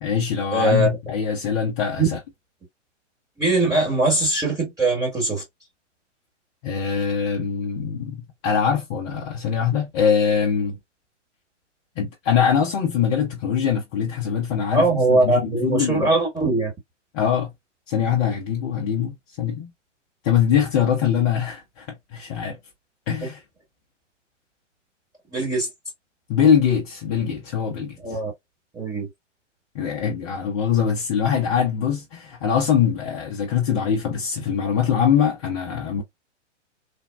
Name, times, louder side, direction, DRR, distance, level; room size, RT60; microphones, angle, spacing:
voice 1, 0.0-2.2 6.6-10.8 12.0-16.1 17.1-17.5 17.9-19.7 20.2-21.9 22.1-22.6 23.1-23.4 26.3-28.2 29.7-36.0, left 7 dB, 20° left, 0.5 m, -23 dB
voice 2, 0.5-0.9 2.0-2.1 3.4-5.4 14.7-16.7 25.3-25.7 28.0-28.3 28.7-29.1, right 2 dB, 10° right, 1.0 m, -21 dB
3.4 x 2.0 x 2.3 m
figure-of-eight pair, 115°, 36 cm